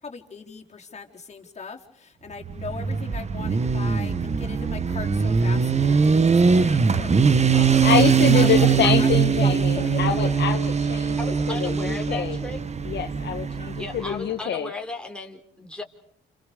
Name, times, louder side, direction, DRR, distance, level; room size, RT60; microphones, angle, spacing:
voice 1, 0.0-7.8 8.3-10.5, left 5 dB, 35° left, 1 dB, 4.2 m, -38 dB
Motorcycle, 2.4-14.1, right 6 dB, 35° right, 1.4 m, -21 dB
voice 2, 7.3-12.4 12.8-14.7, left 9 dB, 60° left, 6 dB, 1.5 m, -26 dB
voice 3, 8.5-9.0 11.2-12.6 13.8-15.8, left 2 dB, 5° left, 2 dB, 4.0 m, -35 dB
30.0 x 29.0 x 5.2 m, 0.68 s
cardioid pair, 90°, 20 cm